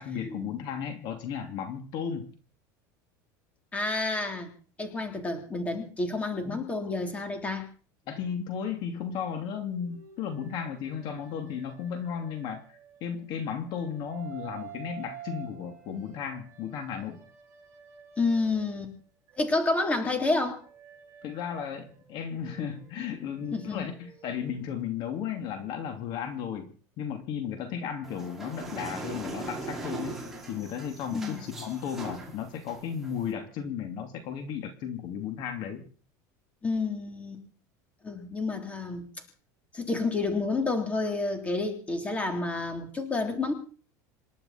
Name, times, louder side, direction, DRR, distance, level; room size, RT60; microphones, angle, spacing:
voice 1, 0.0-2.3 6.4-6.7 8.1-17.2 21.2-35.8, left 7 dB, 50° left, 6 dB, 2.8 m, -35 dB
voice 2, 3.7-4.5 4.8-7.7 18.2-18.9 19.4-20.6 23.5-23.9 31.1-31.4 36.6-37.4 38.0-39.0 39.7-43.5, left 3 dB, 15° left, 4 dB, 3.5 m, -29 dB
sound 1, 9.6-13.2 13.6-18.9 19.3-24.9, right 9 dB, 35° right, 7.1 m, -50 dB
sound 2, 28.0-33.3, right 3 dB, 5° right, 5.1 m, -40 dB
27.5 x 11.5 x 4.4 m, 0.40 s
supercardioid pair, 145°, 10 cm